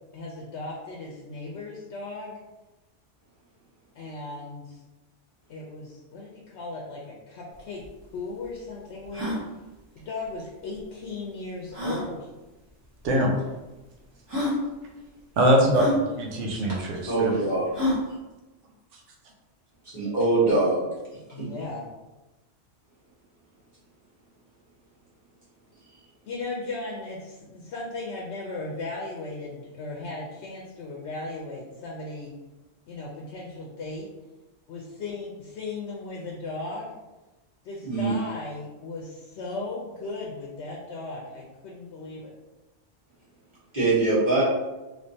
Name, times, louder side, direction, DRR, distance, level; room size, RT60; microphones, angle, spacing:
voice 1, 0.0-2.4 3.9-4.8 5.5-7.8 8.1-9.3 10.0-12.3 21.3-21.9 26.2-32.3 32.9-34.1 34.7-37.0 37.6-42.3, left 3 dB, 70° left, -3 dB, 0.9 m, -36 dB
sound 1, 7.5-7.6 7.8-7.9 8.4-8.5 9.0-9.4 10.7-10.8 11.7-12.1 13.0-13.1 13.9-14.0 14.3-14.6 15.7-16.0 17.7-18.1, left 1 dB, 25° right, 1.0 m, -27 dB
voice 2, 15.4-17.3, right 1 dB, 80° right, 0 dB, 1.0 m, -22 dB
voice 3, 17.1-17.6 19.9-20.8 21.4-21.5 37.8-38.1 43.7-44.4, right 3 dB, 40° right, -11 dB, 1.5 m, -23 dB
3.2 x 3.2 x 2.7 m, 1.1 s
omnidirectional pair, 1.2 m